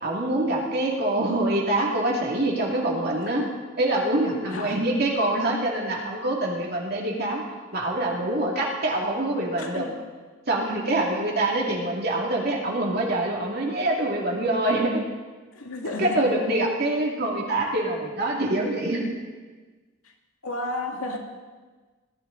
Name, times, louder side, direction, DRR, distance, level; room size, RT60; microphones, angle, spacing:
voice 1, 0.0-3.4 3.8-7.4 7.7-9.9 10.5-15.0 16.0-19.1, right 1 dB, 50° right, -2 dB, 2.3 m, -25 dB
voice 2, 9.6-9.9 15.5-16.2 20.4-21.2, left 2 dB, 85° left, 1 dB, 2.2 m, -32 dB
20.5 x 12.5 x 3.9 m, 1.4 s
head